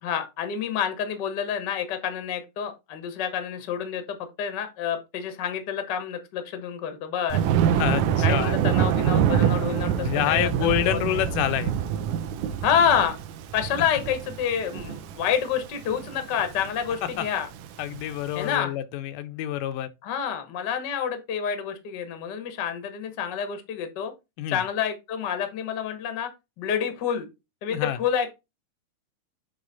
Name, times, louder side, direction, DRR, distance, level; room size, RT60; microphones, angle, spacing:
voice 1, 0.0-7.4 8.2-10.5 10.8-11.2 12.6-13.2 13.5-17.5 18.3-18.7 20.0-24.1 24.5-26.3 26.6-27.3 27.6-28.3, left 8 dB, 70° left, 1.0 m, -28 dB
Thunder, 7.3-18.4, right 9 dB, 75° right, 1.9 m, -26 dB
voice 2, 7.7-8.6 10.0-11.8 17.2-17.3 17.8-19.9 24.4-24.6 27.7-28.0, left 12 dB, 90° left, 2.2 m, -27 dB
7.9 x 3.4 x 4.0 m
omnidirectional pair, 3.7 m